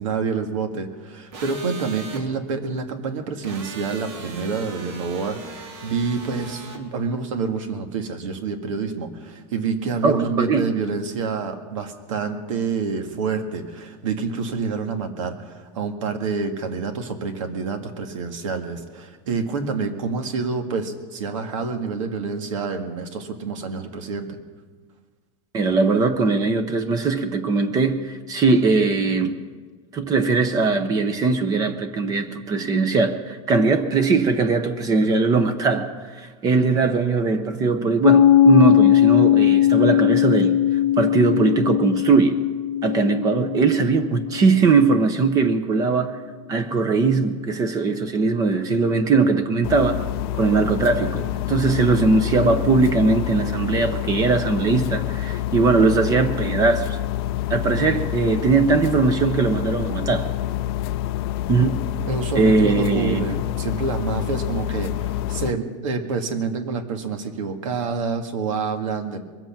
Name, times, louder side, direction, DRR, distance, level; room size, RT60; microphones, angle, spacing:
voice 1, 0.0-24.4 62.1-69.2, right 4 dB, 90° right, 1.9 m, -27 dB
sound 1, 1.3-2.2 3.4-6.8, right 4 dB, 60° right, 2.6 m, -39 dB
voice 2, 10.0-10.6 25.5-29.4 29.9-40.6 41.0-42.4 42.8-46.2 46.5-50.0 50.3-57.0 57.5-60.3 61.5-61.7 62.4-63.3, right 4 dB, 20° right, 0.7 m, -20 dB
Piano, 38.0-45.3, left 12 dB, 75° left, 0.9 m, -19 dB
sound 2, 49.6-65.5, left 13 dB, 50° left, 0.4 m, -27 dB
22.5 x 8.1 x 5.9 m
supercardioid pair, 165°, 16 cm